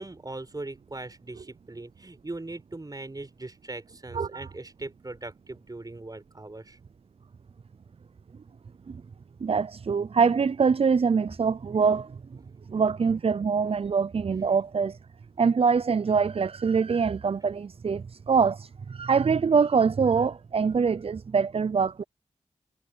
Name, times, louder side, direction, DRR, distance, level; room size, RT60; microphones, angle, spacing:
voice 1, 0.0-6.8, right 2 dB, 30° right, 4.6 m, -40 dB
voice 2, 4.1-4.5 9.4-12.1 12.7-14.9 15.4-22.0, right 5 dB, 45° right, 0.5 m, -24 dB
cardioid pair, 40°, 13 cm